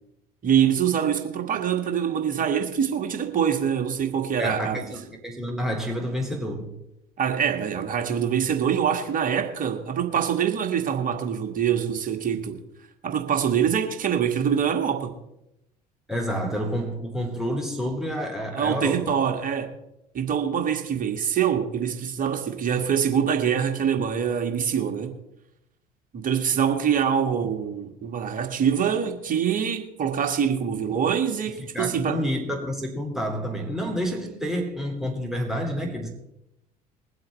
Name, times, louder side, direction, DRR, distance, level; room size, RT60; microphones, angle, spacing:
voice 1, 0.4-4.8 7.2-12.6 13.0-15.1 18.5-19.7 20.1-25.1 26.1-32.2, right 8 dB, 40° right, 1.9 m, -24 dB
voice 2, 4.4-6.7 16.1-19.1 31.5-36.1, equal, ahead, 4.1 m, -29 dB
21.5 x 7.8 x 4.3 m
figure-of-eight pair, 60°, 20 cm